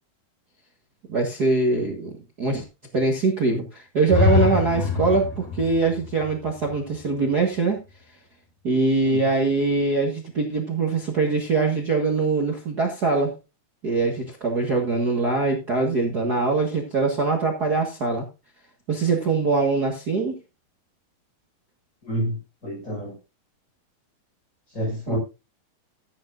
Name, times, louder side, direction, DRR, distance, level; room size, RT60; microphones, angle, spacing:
voice 1, 1.1-2.1 2.4-2.6 2.9-7.8 8.6-13.3 13.8-18.3 18.9-20.4 25.1-25.2, right 3 dB, 55° right, 1.1 m, -23 dB
sound 1, 4.1-7.9, left 5 dB, 70° left, 4.0 m, -25 dB
voice 2, 22.0-22.3 22.6-23.1 24.7-25.2, right 1 dB, 20° left, 6.5 m, -27 dB
14.0 x 9.9 x 2.5 m
omnidirectional pair, 4.5 m